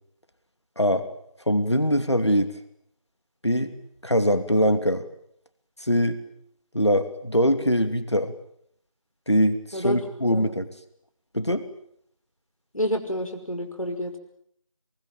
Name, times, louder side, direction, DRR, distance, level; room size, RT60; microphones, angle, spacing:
voice 1, 0.8-1.1 1.5-2.6 3.4-3.7 4.0-5.0 5.8-6.2 6.7-8.3 9.3-10.7 11.3-11.7, equal, 55° left, 9 dB, 2.7 m, -22 dB
voice 2, 12.7-14.1, equal, 90° left, 5 dB, 5.7 m, -28 dB
24.0 x 23.5 x 9.0 m, 0.68 s
figure-of-eight pair, 180°, 17 cm